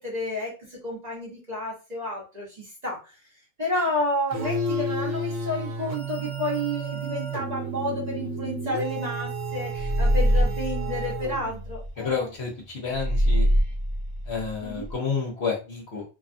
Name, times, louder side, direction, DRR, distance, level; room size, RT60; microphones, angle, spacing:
voice 1, 0.0-3.0 3.6-12.3 14.6-14.9, left 1 dB, 35° right, -4 dB, 0.8 m, -31 dB
sound 1, 4.3-11.8, right 1 dB, 65° right, 1.0 m, -32 dB
sound 2, 9.7-11.9 12.9-14.9, equal, 20° left, 0.9 m, -24 dB
voice 2, 12.0-13.5 14.3-16.0, left 5 dB, 55° left, -1 dB, 0.9 m, -30 dB
2.6 x 2.3 x 2.5 m, 0.31 s
omnidirectional pair, 1.5 m